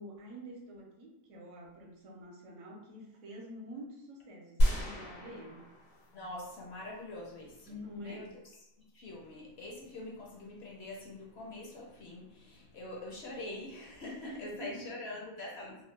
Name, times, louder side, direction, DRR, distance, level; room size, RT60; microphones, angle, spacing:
voice 1, 0.0-5.7 7.7-8.3 14.2-15.1, equal, 75° right, 0 dB, 0.9 m, -47 dB
sound 1, 4.6-6.5 6.9-7.0, equal, 85° left, 1.3 m, -31 dB
voice 2, 6.1-8.3 8.9-15.8, left 2 dB, 60° left, -2 dB, 0.7 m, -44 dB
2.8 x 2.1 x 3.1 m, 0.88 s
omnidirectional pair, 1.4 m